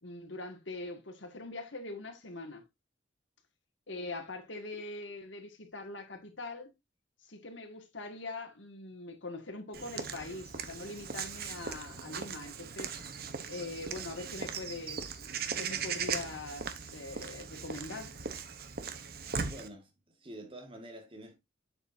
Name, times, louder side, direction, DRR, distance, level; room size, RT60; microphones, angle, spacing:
voice 1, 0.0-2.6 3.9-6.7 7.2-13.0 13.5-15.2 15.6-18.1, left 2 dB, 80° left, 2.0 m, -42 dB
Walk footsteps / Bird vocalization bird call bird song, 9.7-19.7, right 6 dB, 55° right, 1.0 m, -39 dB
voice 2, 19.4-19.9 20.2-21.4, right 1 dB, 30° right, 2.0 m, -47 dB
7.8 x 7.1 x 2.7 m
head